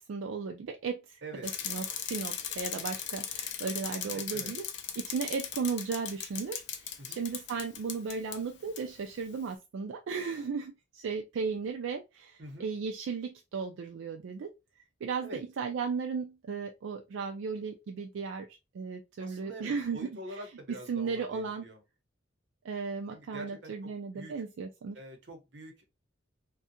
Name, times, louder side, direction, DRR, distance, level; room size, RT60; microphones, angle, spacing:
voice 1, 0.0-4.6 5.0-14.5 15.0-18.5 18.7-20.1 20.7-21.6 22.6-25.0, right 5 dB, 85° right, 0.3 m, -35 dB
Bicycle, 1.4-8.4 8.8-8.9, left 8 dB, 60° left, 0.4 m, -38 dB
voice 2, 4.0-4.5 7.0-7.2 12.4-12.7 15.2-15.4 19.2-21.8 23.1-24.4 24.9-25.9, right 1 dB, 65° right, 0.8 m, -46 dB
2.7 x 2.2 x 2.6 m
head